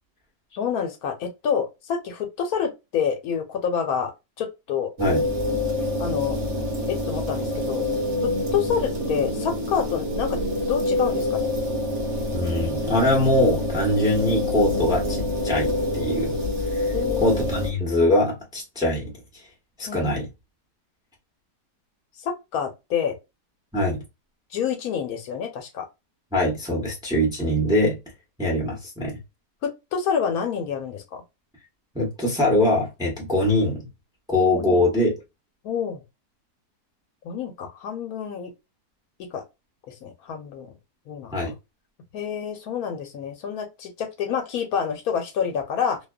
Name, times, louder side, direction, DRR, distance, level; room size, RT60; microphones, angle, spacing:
voice 1, 0.5-4.1 4.4-4.9 6.0-6.4 6.9-7.8 8.2-10.4 10.7-11.5 16.9-17.4 19.9-20.2 22.2-23.2 24.5-25.9 29.6-31.2 34.5-34.8 35.6-36.0 37.2-38.5 39.2-39.4 39.9-40.7 41.1-41.4 42.1-46.0, left 7 dB, 75° left, 1.0 m, -28 dB
sound 1, 5.0-17.7, left 1 dB, 50° right, 1.0 m, -26 dB
voice 2, 12.3-16.3 16.7-16.9 17.2-19.4 19.8-20.3 23.7-24.0 26.3-28.0 28.4-29.2 31.9-33.9 34.3-35.1 41.3-41.5, left 1 dB, 5° right, 0.7 m, -23 dB
2.6 x 2.3 x 2.2 m
omnidirectional pair, 1.7 m